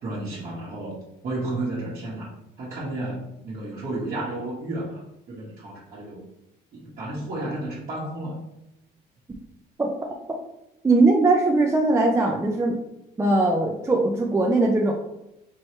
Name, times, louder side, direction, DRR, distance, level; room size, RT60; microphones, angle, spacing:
voice 1, 0.0-1.0 1.2-6.2 6.7-8.4, right 2 dB, 50° right, -8 dB, 1.4 m, -32 dB
voice 2, 10.8-12.8 13.2-14.9, right 2 dB, 15° right, 0 dB, 0.5 m, -20 dB
4.6 x 3.1 x 3.1 m, 0.86 s
cardioid pair, 110°, 17 cm